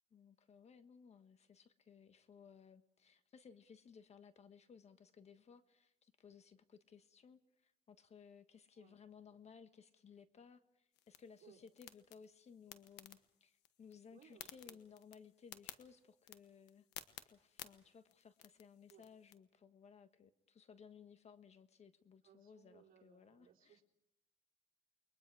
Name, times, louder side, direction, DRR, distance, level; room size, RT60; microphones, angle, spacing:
voice 1, 0.1-16.9 17.2-23.8, left 6 dB, 40° left, 10 dB, 1.4 m, -60 dB
sound 1, 10.9-19.4, left 13 dB, 90° left, 1.3 m, -57 dB
voice 2, 14.1-14.8 18.9-19.1 22.2-23.8, right 9 dB, 60° right, 2 dB, 3.8 m, -65 dB
29.5 x 22.0 x 4.8 m, 0.89 s
cardioid pair, 110°, 17 cm